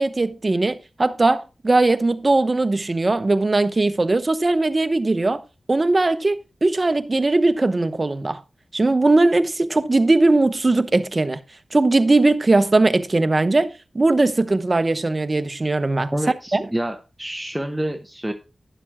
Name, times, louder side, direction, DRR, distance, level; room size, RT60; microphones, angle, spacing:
voice 1, 0.0-5.4 5.7-8.4 8.7-11.4 11.7-16.1 16.5-16.6, right 2 dB, 35° right, 1.0 m, -19 dB
voice 2, 16.1-18.3, right 1 dB, 10° right, 0.9 m, -27 dB
12.0 x 10.0 x 2.2 m
wide cardioid pair, 100°, 0 cm